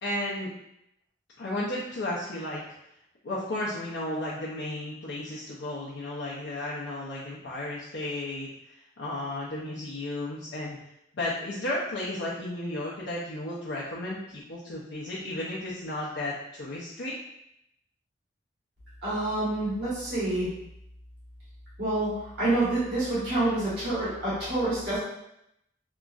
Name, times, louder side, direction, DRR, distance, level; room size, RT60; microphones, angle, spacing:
voice 1, 0.0-0.5 1.4-2.6 3.2-8.5 9.0-10.8 11.1-17.1, left 1 dB, 90° left, -7 dB, 0.5 m, -33 dB
voice 2, 19.0-20.5 21.8-22.1 22.4-25.0, right 2 dB, 65° right, -11 dB, 1.3 m, -27 dB
2.9 x 2.5 x 2.3 m, 0.81 s
head